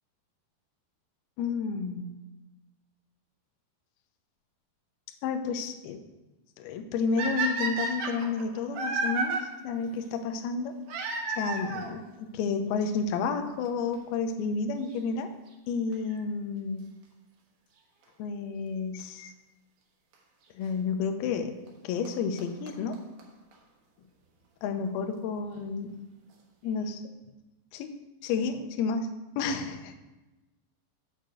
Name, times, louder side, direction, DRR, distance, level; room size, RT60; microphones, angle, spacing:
voice 1, 1.4-2.2 5.2-6.0 6.6-9.4 9.6-10.8 11.3-15.3 15.7-16.9 18.2-19.3 20.6-21.5 21.8-23.0 24.6-25.9 26.6-27.0 27.7-27.9 28.2-29.1 29.4-29.9, left 5 dB, 80° left, 6 dB, 2.3 m, -31 dB
sound 1, 7.2-9.4 10.9-11.9 12.9-13.0 13.7-13.8 13.9-14.0 15.9-16.2 19.0-19.1 20.1-20.2 21.7-21.8 22.1-22.2 22.4-22.5 22.7-22.8 22.9-23.0 23.2-23.3 23.5-23.6, right 3 dB, 65° right, 2.1 m, -31 dB
6.6 x 6.5 x 6.3 m, 1.1 s
omnidirectional pair, 5.2 m